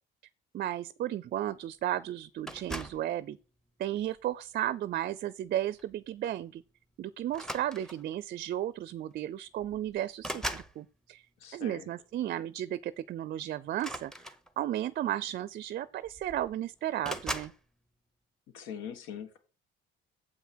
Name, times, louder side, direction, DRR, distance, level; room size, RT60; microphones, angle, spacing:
voice 1, 0.5-3.4 3.8-6.6 7.0-11.2 11.5-14.1 14.6-17.5, right 12 dB, 50° right, 0.4 m, -34 dB
sound 1, 2.5-3.1 4.0-4.3 5.8-5.9 6.2-6.4 7.3-8.2 9.2-9.3 9.6-10.8 13.7-14.8 15.7-15.8 16.0-16.6 17.0-17.6, right 1 dB, 5° left, 0.8 m, -39 dB
voice 2, 11.4-11.9 18.5-19.4, left 8 dB, 85° left, 1.7 m, -42 dB
7.8 x 5.8 x 6.2 m
cardioid pair, 120°, 21 cm